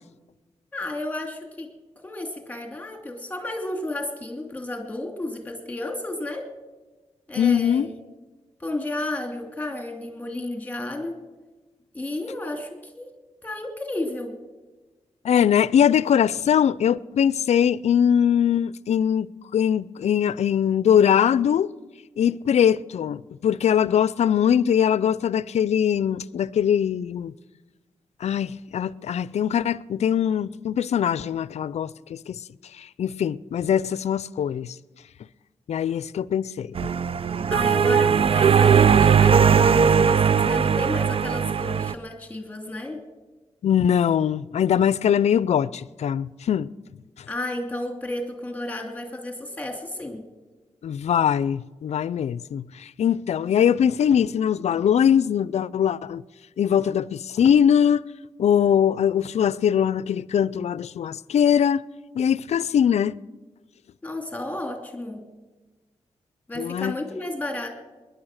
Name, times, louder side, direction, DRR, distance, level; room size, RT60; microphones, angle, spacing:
voice 1, 0.7-1.7 2.0-6.5 7.3-8.0 8.6-11.2 11.9-13.1 13.4-14.4 37.5-43.0 47.3-50.2 64.0-65.2 66.5-67.7, left 1 dB, 15° left, 2.7 m, -32 dB
voice 2, 7.4-7.9 15.2-19.3 19.5-21.7 22.2-27.3 28.2-32.4 32.8-34.7 35.7-36.7 43.6-46.7 50.8-56.2 56.6-58.0 58.4-61.8 62.1-63.2 66.6-66.9, left 8 dB, 75° left, 0.5 m, -21 dB
sound 1, 36.8-41.9, right 7 dB, 55° right, 0.5 m, -19 dB
21.0 x 10.5 x 6.4 m
cardioid pair, 50°, 12 cm